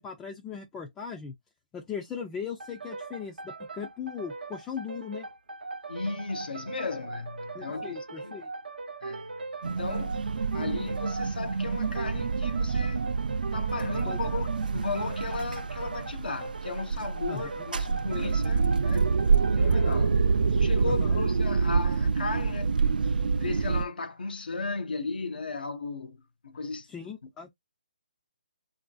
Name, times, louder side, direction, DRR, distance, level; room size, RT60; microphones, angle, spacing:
voice 1, 0.0-1.3 1.7-5.3 7.5-8.5 14.1-14.4 17.3-17.6 20.9-21.2 26.9-27.5, left 7 dB, 10° left, 0.3 m, -39 dB
sound 1, 2.6-20.0, right 3 dB, 90° right, 0.7 m, -40 dB
voice 2, 5.9-8.3 9.0-10.2 10.5-13.0 13.5-19.1 19.5-20.3 20.6-22.7 23.3-26.9, left 3 dB, 80° left, 0.6 m, -35 dB
sound 2, 9.6-23.9, right 5 dB, 70° right, 0.3 m, -27 dB
3.2 x 2.5 x 2.3 m
hypercardioid pair, 165°, 5 cm